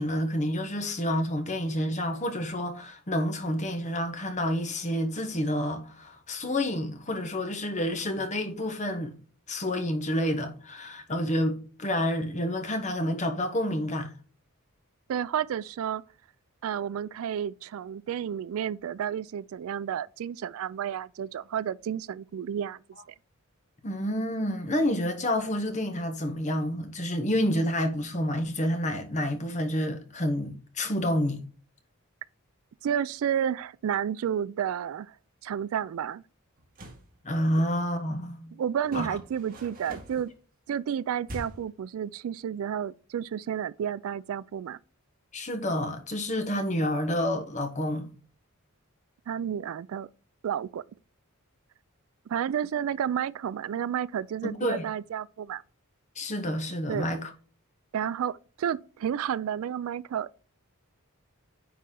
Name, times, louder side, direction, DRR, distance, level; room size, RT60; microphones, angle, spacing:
voice 1, 0.0-9.1 9.5-14.1 23.8-31.4 37.2-38.5 38.9-39.1 45.3-48.1 54.4-54.8 56.1-57.3, left 1 dB, 30° left, 1.1 m, -29 dB
voice 2, 15.1-16.0 16.6-22.8 32.8-35.2 35.4-36.2 38.5-40.3 40.7-44.8 49.3-50.1 50.4-50.8 52.3-55.6 56.9-57.1 57.9-60.3, right 9 dB, 70° right, 0.3 m, -31 dB
sound 1, 36.6-37.1 38.8-40.3 41.2-41.8, equal, 40° right, 1.8 m, -42 dB
9.5 x 4.1 x 3.8 m
head